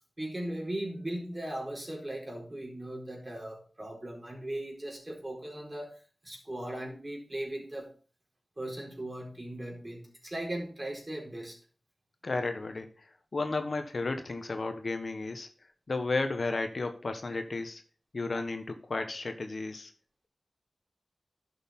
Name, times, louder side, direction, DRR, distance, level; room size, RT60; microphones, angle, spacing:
voice 1, 0.2-5.9 6.2-7.9 8.6-11.6, right 1 dB, 30° right, 0 dB, 4.2 m, -38 dB
voice 2, 12.2-12.9 13.3-15.5 15.9-17.8 18.1-19.9, left 3 dB, 65° left, 7 dB, 1.3 m, -33 dB
11.5 x 6.5 x 3.8 m, 0.39 s
wide cardioid pair, 50°, 0 cm